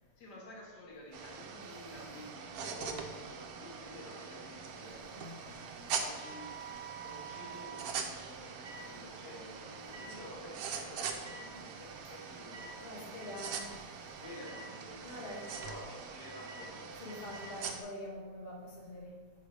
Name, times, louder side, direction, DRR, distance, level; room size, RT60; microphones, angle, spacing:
voice 1, 0.2-13.6 13.8-17.0, left 1 dB, 85° left, -1 dB, 1.7 m, -51 dB
sound 1, 1.1-17.8, right 6 dB, 70° right, 1.0 m, -43 dB
voice 2, 5.1-5.6 12.8-13.8 15.0-15.4 17.0-19.1, left 1 dB, 35° left, -3 dB, 1.4 m, -45 dB
sound 2, 6.0-7.8 8.6-8.8 9.9-10.1 11.2-11.4 12.5-12.7 13.2-13.6 14.2-14.6 15.3-15.7 16.2-16.7 17.1-17.5, right 4 dB, 30° right, 0.5 m, -49 dB
5.1 x 4.3 x 4.8 m, 1.3 s
omnidirectional pair, 1.7 m